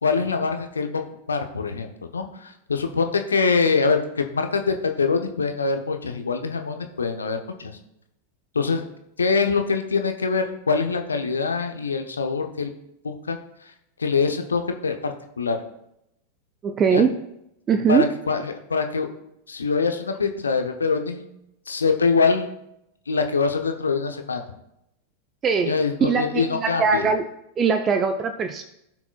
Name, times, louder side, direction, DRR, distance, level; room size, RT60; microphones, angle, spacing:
voice 1, 0.0-1.0 1.3-7.8 8.5-8.8 9.2-12.7 13.0-13.4 14.0-15.6 16.9-17.0 17.9-19.1 19.5-21.2 21.7-22.5 23.1-24.4 25.7-27.1, left 4 dB, 75° left, 6 dB, 0.8 m, -24 dB
voice 2, 16.6-17.1 17.7-18.0 25.4-27.2 27.6-28.6, right 5 dB, 25° right, 8 dB, 0.5 m, -21 dB
14.5 x 5.9 x 2.3 m, 0.80 s
figure-of-eight pair, 90°, 0 cm